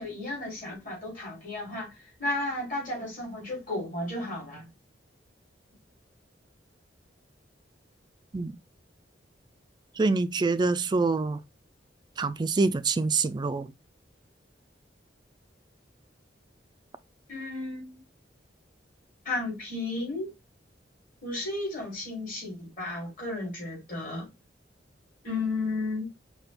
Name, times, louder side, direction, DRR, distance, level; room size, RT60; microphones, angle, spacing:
voice 1, 0.0-4.7 17.3-18.0 19.2-20.3 21.2-24.3 25.2-26.1, left 2 dB, 50° left, 3.2 m, -33 dB
voice 2, 10.0-11.4 12.2-13.7, right 3 dB, 25° right, 0.3 m, -25 dB
5.8 x 2.3 x 3.4 m
head